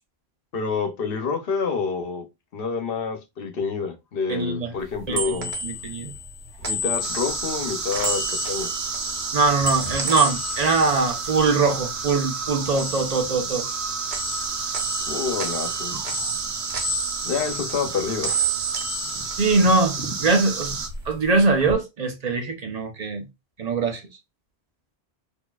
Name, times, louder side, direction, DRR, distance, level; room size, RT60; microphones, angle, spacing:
voice 1, 0.5-2.2 2.5-5.5 6.6-8.7 15.0-16.0 17.2-18.5, left 5 dB, 60° left, 1.0 m, -28 dB
voice 2, 4.3-4.7 5.1-6.1 9.3-13.7 19.4-20.8 21.1-23.2 23.6-24.0, right 3 dB, 40° right, 0.8 m, -22 dB
sound 1, 4.8-12.1 12.4-13.8 14.1-20.1 20.4-21.7, right 2 dB, 70° right, 1.2 m, -31 dB
sound 2, 7.0-20.9, right 4 dB, 90° right, 1.1 m, -31 dB
4.3 x 2.8 x 2.3 m
omnidirectional pair, 1.1 m